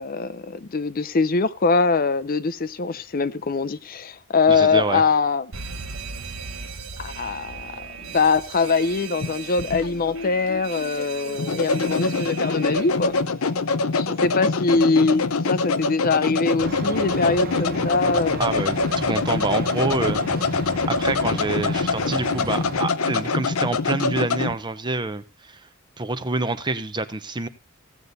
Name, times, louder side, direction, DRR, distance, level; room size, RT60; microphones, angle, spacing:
voice 1, 0.0-5.5 7.0-13.1 13.9-18.4, left 4 dB, 45° left, 0.6 m, -23 dB
voice 2, 4.5-5.0 18.4-20.2 20.6-25.6 26.0-27.5, right 3 dB, 20° right, 0.7 m, -27 dB
Alarm, 5.5-13.2, right 5 dB, 70° right, 1.2 m, -37 dB
sound 1, 9.2-24.5, left 4 dB, 85° left, 0.7 m, -24 dB
sound 2, 16.6-22.8, right 2 dB, 45° right, 1.3 m, -34 dB
16.0 x 8.2 x 4.0 m
head